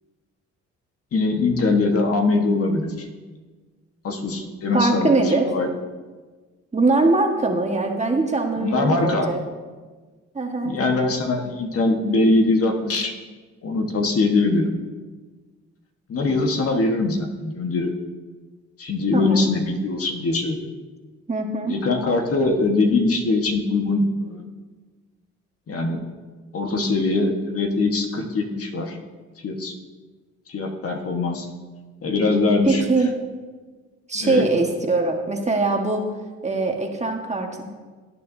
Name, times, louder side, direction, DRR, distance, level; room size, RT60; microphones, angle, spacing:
voice 1, 1.1-3.1 4.0-5.7 8.6-9.3 10.6-13.1 13.6-14.7 16.1-17.9 18.8-20.7 21.7-24.4 25.7-26.0 26.5-29.0 29.4-29.7 30.5-31.5 32.0-32.9 34.2-34.4, left 3 dB, 50° left, 3 dB, 1.4 m, -22 dB
voice 2, 4.7-5.5 6.7-9.4 10.3-10.8 19.1-19.5 21.3-21.7 32.6-33.1 34.1-36.0 36.4-37.7, right 3 dB, 20° right, 2 dB, 1.5 m, -22 dB
17.5 x 9.1 x 2.7 m, 1.4 s
cardioid pair, 90°, 30 cm